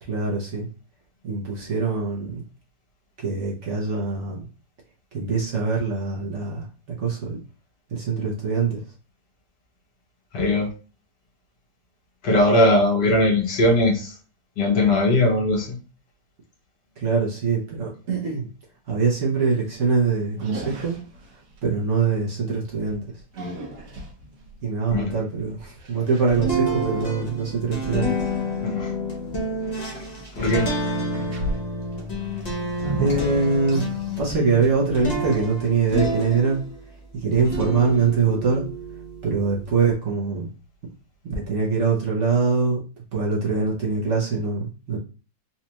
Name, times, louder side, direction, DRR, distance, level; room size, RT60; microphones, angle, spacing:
voice 1, 0.1-0.7 1.2-2.4 3.2-4.4 5.1-7.4 7.9-8.8 17.0-18.5 18.9-21.0 21.6-23.0 24.6-28.1 33.0-33.9 34.2-36.6 37.2-38.6 39.2-40.5 41.3-42.8 43.1-45.0, right 4 dB, 50° right, -3 dB, 1.0 m, -23 dB
voice 2, 10.3-10.7 12.2-14.1 14.6-15.8 24.9-25.2 28.6-28.9 30.4-30.7, left 1 dB, 75° left, 0 dB, 1.6 m, -20 dB
sound 1, 19.6-19.9 20.3-21.6 22.5-26.2 29.1-30.6 30.9-34.2, right 2 dB, 70° right, 1.7 m, -34 dB
sound 2, 26.3-36.9 37.3-39.6, equal, 35° left, 0.7 m, -29 dB
4.2 x 2.4 x 2.9 m, 0.35 s
omnidirectional pair, 1.8 m